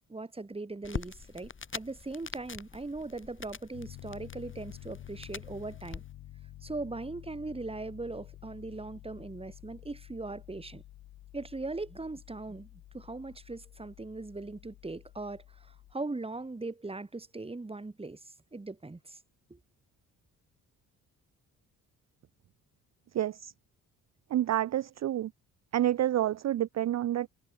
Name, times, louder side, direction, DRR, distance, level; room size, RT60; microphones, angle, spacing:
voice 1, 0.1-6.0 6.6-10.8 11.3-19.2 19.5-19.6, right 3 dB, 15° right, 1.7 m, -40 dB
sound 1, 0.8-6.0, left 5 dB, 30° left, 1.8 m, -43 dB
Piano, 3.7-15.9, left 14 dB, 80° left, 3.1 m, -50 dB
voice 2, 23.1-23.5 24.3-25.3 25.7-27.3, right 12 dB, 45° right, 0.6 m, -28 dB
supercardioid pair, 65°, 37 cm